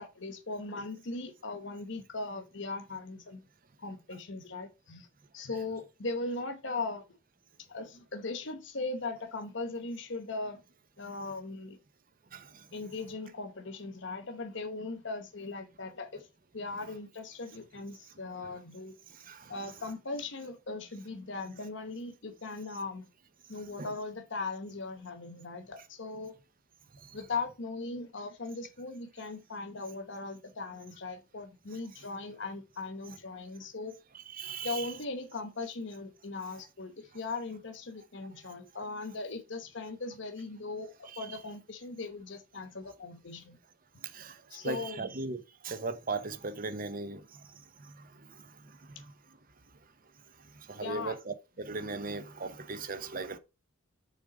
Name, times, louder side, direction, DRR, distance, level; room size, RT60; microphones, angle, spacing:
voice 1, 0.0-3.4 3.8-5.1 5.3-7.0 7.7-10.6 11.0-11.8 12.7-16.3 16.5-18.9 19.5-23.1 23.5-26.3 27.1-34.0 34.6-43.6 44.5-45.1 50.7-51.2, left 3 dB, 60° left, 1.0 m, -39 dB
voice 2, 12.3-12.7 16.8-16.9 18.4-18.5 19.1-19.8 23.8-23.9 27.0-27.2 34.1-34.9 38.4-38.5 41.1-41.4 44.0-47.5 47.8-49.1 50.6-53.4, right 3 dB, 45° right, 0.8 m, -39 dB
6.7 x 3.7 x 4.8 m
head